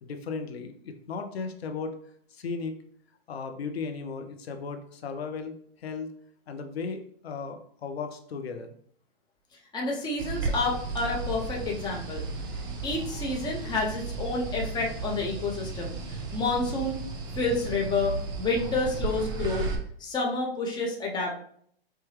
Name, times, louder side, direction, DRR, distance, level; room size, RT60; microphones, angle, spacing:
voice 1, 0.0-2.0 2.3-2.8 3.3-6.2 6.5-8.7, left 5 dB, 80° left, 6 dB, 0.7 m, -36 dB
voice 2, 9.7-12.2 12.8-16.0 16.3-17.0 17.3-19.7 20.0-21.3, left 3 dB, 15° left, -2 dB, 0.8 m, -29 dB
sound 1, 10.2-19.8, right 3 dB, 15° right, 0.3 m, -34 dB
4.7 x 2.2 x 3.1 m, 0.62 s
hypercardioid pair, 125°, 31 cm